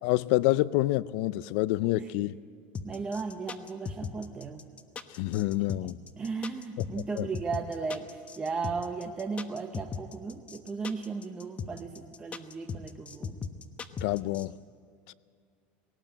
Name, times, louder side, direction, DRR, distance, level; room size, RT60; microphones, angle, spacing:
voice 1, 0.0-2.4 5.2-6.0 7.1-7.3 14.0-14.5 15.1-15.2, left 17 dB, 65° left, 0.5 m, -27 dB
sound 1, 2.7-14.4, left 6 dB, 20° left, 1.0 m, -38 dB
voice 2, 2.8-4.6 5.8-13.4, right 4 dB, 20° right, 0.9 m, -36 dB
19.5 x 18.0 x 8.9 m
supercardioid pair, 150°, 6 cm